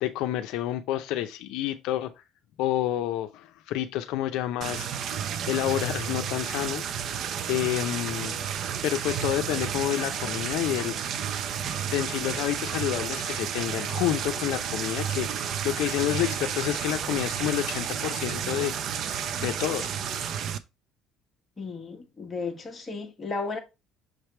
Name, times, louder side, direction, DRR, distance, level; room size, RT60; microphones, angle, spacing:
voice 1, 0.0-2.1 2.6-4.9 5.5-6.9 7.5-8.4 8.8-10.9 11.9-18.7 19.4-19.9, left 13 dB, 75° left, 0.5 m, -29 dB
sound 1, 4.6-20.6, right 8 dB, 50° right, 0.6 m, -31 dB
voice 2, 21.6-23.6, left 4 dB, 20° left, 1.4 m, -34 dB
6.5 x 3.3 x 4.4 m
cardioid pair, 150°, 0 cm